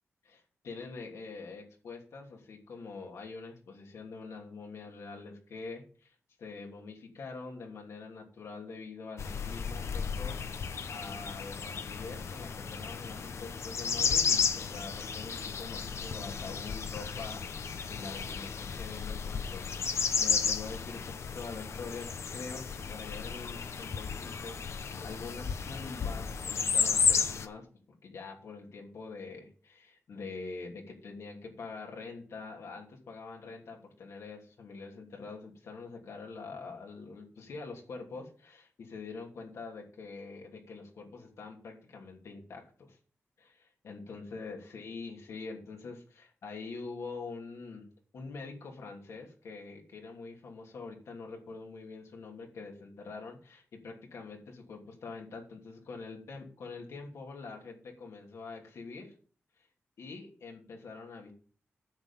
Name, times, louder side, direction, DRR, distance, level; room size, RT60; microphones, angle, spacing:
voice 1, 0.2-10.4 10.9-27.7 28.0-43.0 43.4-47.9 48.1-59.1 60.0-61.3, left 4 dB, 85° left, 1 dB, 2.9 m, -45 dB
sound 1, 9.2-27.5, left 6 dB, 70° left, 0.9 m, -33 dB
9.6 x 7.2 x 5.7 m, 0.42 s
cardioid pair, 85°, 5 cm